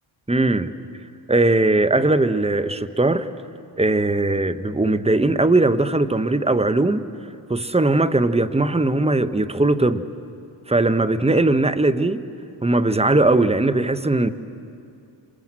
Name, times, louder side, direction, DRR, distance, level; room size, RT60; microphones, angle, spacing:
voice 1, 0.3-0.7 1.3-3.3 3.8-7.0 7.5-10.0 10.7-12.2 12.6-14.3, right 2 dB, 10° right, 11 dB, 1.3 m, -19 dB
29.5 x 26.5 x 7.7 m, 2.5 s
cardioid pair, 55°, 49 cm